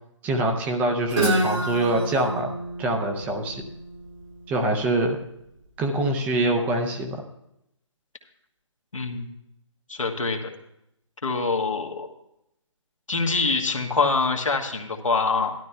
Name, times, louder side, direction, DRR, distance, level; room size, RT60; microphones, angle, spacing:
voice 1, 0.2-2.5 2.8-3.6 4.5-5.2 5.8-7.2, right 1 dB, 10° right, 2 dB, 0.6 m, -24 dB
Guitar, 1.1-4.9, right 1 dB, 80° right, 4.7 m, -28 dB
voice 2, 8.9-9.3 9.9-10.5 11.2-12.1 13.1-15.5, left 4 dB, 85° left, 2 dB, 1.4 m, -25 dB
16.0 x 12.0 x 2.2 m, 0.81 s
figure-of-eight pair, 145°, 16 cm